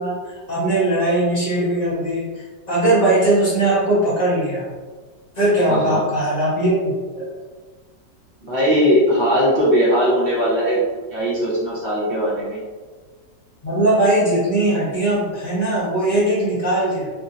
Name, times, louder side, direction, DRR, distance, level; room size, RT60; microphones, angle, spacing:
voice 1, 0.0-4.7 5.4-7.4 13.6-17.1, right 1 dB, 35° left, -8 dB, 0.7 m, -20 dB
voice 2, 5.7-6.0 8.4-10.8 11.1-12.6, equal, 45° right, -6 dB, 0.8 m, -19 dB
3.5 x 2.7 x 2.5 m, 1.4 s
omnidirectional pair, 1.9 m